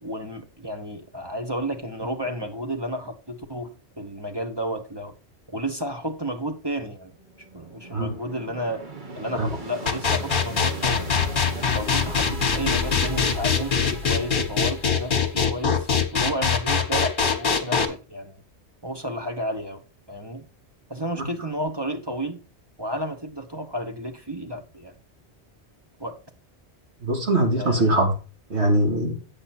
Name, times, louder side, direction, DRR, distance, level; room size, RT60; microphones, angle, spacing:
voice 1, 0.0-3.7 4.0-5.1 5.5-7.1 7.5-8.8 9.1-11.1 11.7-18.4 18.8-19.8 20.1-20.4 20.9-22.4 22.8-24.9 26.0-26.2 27.6-28.0, equal, 25° right, 1.3 m, -32 dB
sound 1, 7.2-16.0, equal, 45° right, 1.7 m, -35 dB
sound 2, 9.9-17.9, left 6 dB, 50° left, 1.4 m, -22 dB
voice 2, 27.0-28.1 28.5-29.2, right 1 dB, 80° right, 2.8 m, -22 dB
8.6 x 7.5 x 4.3 m
omnidirectional pair, 1.1 m